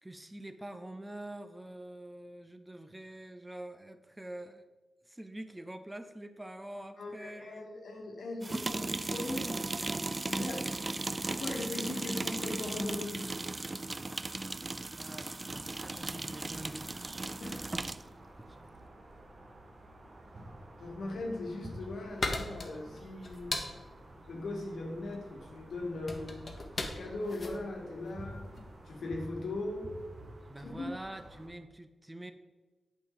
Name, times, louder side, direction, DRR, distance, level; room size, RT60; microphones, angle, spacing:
voice 1, 0.0-4.6 5.1-7.8 14.6-17.3 18.4-18.7 30.5-32.3, right 1 dB, 15° right, 8 dB, 0.7 m, -46 dB
voice 2, 7.0-9.5 10.2-10.7 11.1-13.2 17.4-17.7 20.8-23.5 24.3-26.4 26.8-28.4 28.9-29.9 30.6-30.9, left 2 dB, 80° left, 1 dB, 1.4 m, -39 dB
sound 1, 8.4-18.1, right 2 dB, 35° right, 0.3 m, -36 dB
sound 2, 15.4-31.5, right 1 dB, 55° right, 1.5 m, -50 dB
sound 3, 21.3-28.8, left 2 dB, 55° left, 1.1 m, -39 dB
8.3 x 5.1 x 4.0 m, 1.2 s
supercardioid pair, 45°, 0 cm